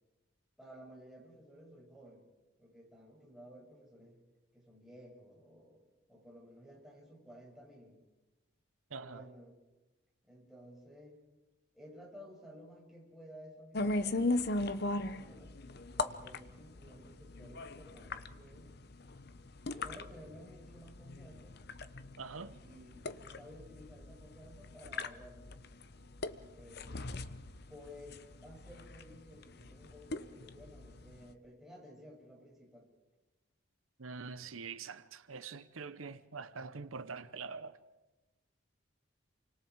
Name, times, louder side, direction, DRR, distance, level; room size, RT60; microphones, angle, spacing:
voice 1, 0.6-2.3 2.6-4.2 4.5-5.8 6.1-8.0 8.9-9.6 10.2-11.2 11.7-15.6 16.0-18.7 19.7-21.6 22.6-25.5 26.5-27.1 27.7-32.9, equal, ahead, 6.5 m, -55 dB
voice 2, 8.9-9.2 22.2-22.6 34.0-37.8, right 4 dB, 85° right, 0.9 m, -44 dB
sound 1, 13.7-31.3, left 2 dB, 50° left, 0.9 m, -39 dB
28.5 x 25.5 x 4.7 m
head